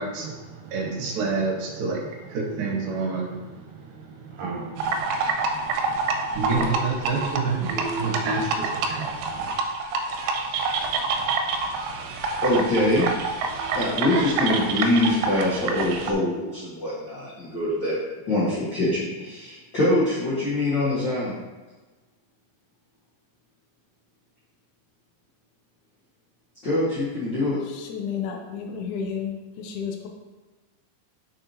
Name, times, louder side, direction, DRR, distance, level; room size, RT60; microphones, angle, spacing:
voice 1, 0.0-9.5, right 4 dB, 70° right, 0 dB, 2.6 m, -29 dB
sound 1, 4.8-16.1, right 4 dB, 90° right, 2.5 m, -27 dB
voice 2, 12.4-13.1 13.7-18.0 18.3-21.3 26.6-27.6, left 1 dB, 45° left, -10 dB, 1.6 m, -24 dB
voice 3, 27.7-30.1, left 7 dB, 85° left, 2 dB, 1.7 m, -32 dB
6.3 x 6.0 x 2.9 m, 1.2 s
omnidirectional pair, 4.3 m